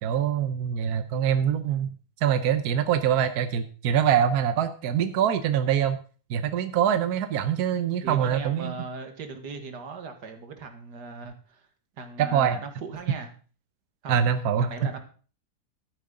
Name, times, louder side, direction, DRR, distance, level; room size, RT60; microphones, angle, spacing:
voice 1, 0.0-1.9 2.2-6.0 6.3-8.7 12.2-12.6 14.1-14.9, right 9 dB, 70° right, 10 dB, 1.3 m, -24 dB
voice 2, 8.0-11.7 12.0-13.3 14.0-14.2 14.6-15.0, right 4 dB, 90° right, 6 dB, 2.1 m, -38 dB
13.0 x 9.6 x 3.8 m, 0.39 s
omnidirectional pair, 1.7 m